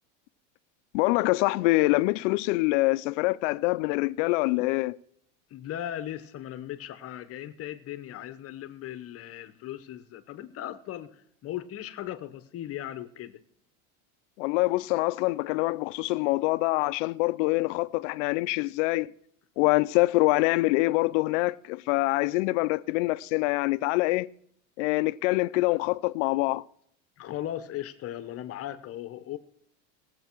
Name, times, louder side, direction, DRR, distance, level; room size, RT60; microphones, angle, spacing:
voice 1, 0.9-5.0 14.4-19.1 19.6-24.3 24.8-26.6, left 21 dB, 70° left, 0.6 m, -25 dB
voice 2, 5.5-13.4 27.2-29.4, left 12 dB, 40° left, 1.0 m, -38 dB
19.5 x 7.8 x 4.5 m
supercardioid pair, 135°, 37 cm